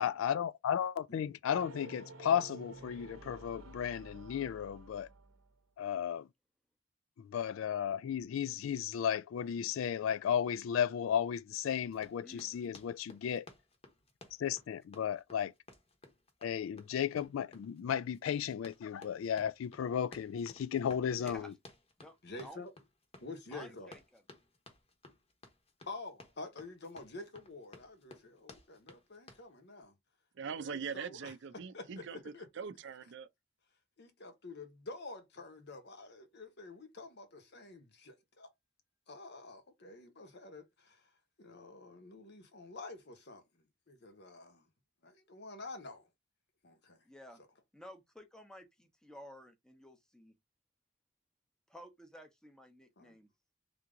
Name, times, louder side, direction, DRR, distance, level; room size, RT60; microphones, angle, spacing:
voice 1, 0.0-5.1 5.8-6.3 7.2-13.5 14.4-15.5 16.4-21.5, left 8 dB, 80° left, 0.3 m, -34 dB
sound 1, 1.4-5.6, right 3 dB, 80° right, 0.8 m, -51 dB
Run, 11.9-29.5, left 2 dB, 30° left, 1.0 m, -57 dB
voice 2, 12.2-12.8 21.2-21.5 22.0-22.6 23.5-24.2 47.0-47.4 47.7-50.3 51.7-53.3, equal, 5° left, 0.8 m, -53 dB
voice 3, 22.2-22.7 23.2-23.9 25.9-29.9 30.6-31.3 31.7-32.5 34.0-38.5 39.1-41.1 41.4-44.7 45.0-46.1 46.6-47.0 47.4-47.5 53.0-53.2, left 3 dB, 55° left, 1.1 m, -49 dB
voice 4, 30.3-32.2 32.5-33.3, right 6 dB, 65° right, 0.5 m, -42 dB
3.5 x 2.9 x 3.7 m
head